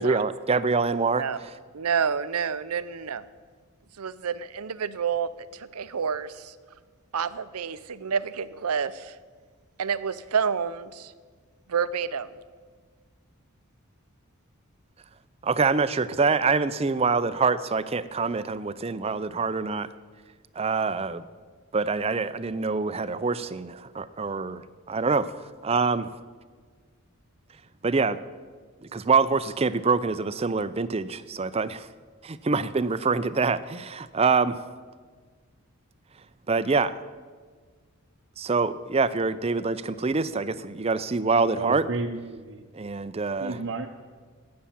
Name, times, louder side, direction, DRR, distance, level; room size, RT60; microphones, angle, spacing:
voice 1, 0.0-1.5 15.4-19.9 20.6-21.2 21.7-25.3 25.6-26.1 27.8-28.2 28.8-31.9 32.2-34.6 36.5-37.0 38.4-41.8 42.7-43.6, right 4 dB, 25° right, 0.5 m, -25 dB
voice 2, 1.7-3.2 4.0-6.5 7.1-9.1 9.8-11.1 11.7-12.3, right 6 dB, 90° right, 0.6 m, -29 dB
voice 3, 41.5-42.7 43.4-43.9, right 3 dB, 55° right, 0.7 m, -32 dB
13.0 x 8.6 x 8.6 m
head